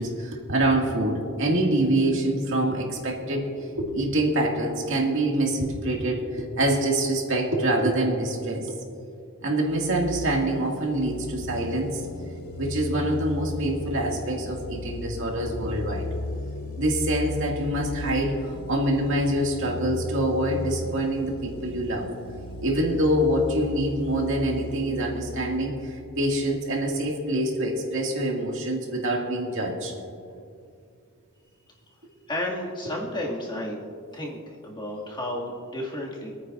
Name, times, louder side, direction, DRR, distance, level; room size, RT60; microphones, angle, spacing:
voice 1, 0.0-8.7 9.4-12.0 12.6-16.1 16.8-22.1 22.6-29.9, right 1 dB, 65° right, 0 dB, 2.2 m, -25 dB
sound 1, 9.7-27.1, left 1 dB, 80° left, 0.7 m, -36 dB
voice 2, 32.3-33.8 34.1-36.4, left 1 dB, 20° left, -4 dB, 2.2 m, -32 dB
26.5 x 9.5 x 2.6 m, 2.4 s
head